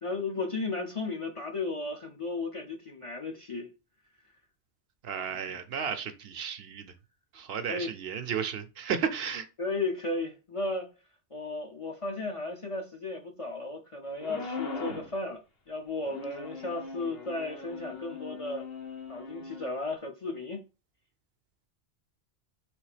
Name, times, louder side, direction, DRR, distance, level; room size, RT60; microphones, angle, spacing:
voice 1, 0.0-3.7 5.5-5.6 7.7-7.9 9.6-10.9 11.3-15.4 15.7-18.7 19.1-20.6, left 3 dB, 40° left, 0.5 m, -34 dB
voice 2, 5.0-6.9 7.3-9.5, right 7 dB, 65° right, 0.8 m, -33 dB
sound 1, 14.2-15.1 16.0-19.7, left 4 dB, 60° left, 1.2 m, -40 dB
3.4 x 3.2 x 4.8 m
omnidirectional pair, 1.1 m